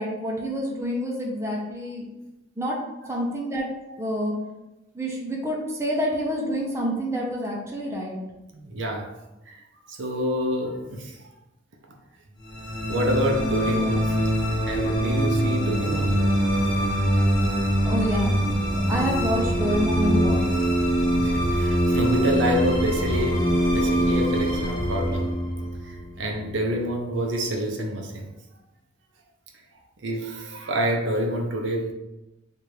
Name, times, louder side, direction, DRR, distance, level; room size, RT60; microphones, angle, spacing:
voice 1, 0.0-2.0 2.6-2.8 3.1-3.7 4.0-4.3 4.9-8.2 17.8-18.3 18.7-20.4, equal, 15° right, -2 dB, 0.7 m, -27 dB
voice 2, 8.5-9.1 9.5-9.6 9.9-11.2 12.9-14.2 14.7-16.1 21.1-25.3 25.8-28.3 30.0-31.9, equal, 75° right, 1 dB, 0.7 m, -27 dB
sound 1, 12.4-26.8, equal, 25° left, 1.0 m, -23 dB
3.2 x 2.5 x 4.4 m, 0.98 s
head